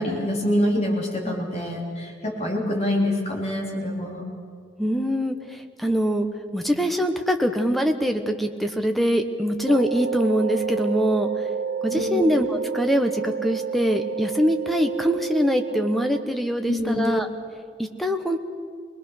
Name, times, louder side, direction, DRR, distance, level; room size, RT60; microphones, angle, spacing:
voice 1, 0.0-4.2 11.9-12.3 16.7-17.1, left 1 dB, 35° left, -1 dB, 3.5 m, -25 dB
voice 2, 4.8-6.3 6.5-11.3 11.8-17.3 17.8-18.4, equal, ahead, 5 dB, 1.1 m, -23 dB
sound 1, 9.7-16.2, right 7 dB, 60° right, 0.9 m, -30 dB
24.0 x 20.5 x 6.4 m, 2.1 s
head